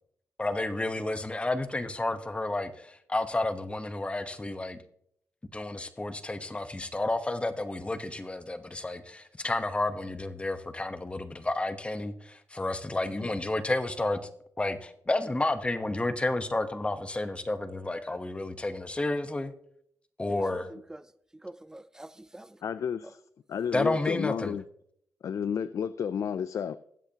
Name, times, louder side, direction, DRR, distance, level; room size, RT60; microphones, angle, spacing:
voice 1, 0.4-4.8 5.5-14.2 14.6-19.5 20.2-20.7 23.7-24.5, left 2 dB, 20° left, 1.1 m, -31 dB
voice 2, 20.3-21.1 21.4-22.6, right 1 dB, 10° right, 0.6 m, -45 dB
voice 3, 22.6-23.2 23.5-24.6 25.2-26.8, left 7 dB, 65° left, 0.4 m, -31 dB
20.0 x 8.1 x 2.9 m
cardioid pair, 75°, 6 cm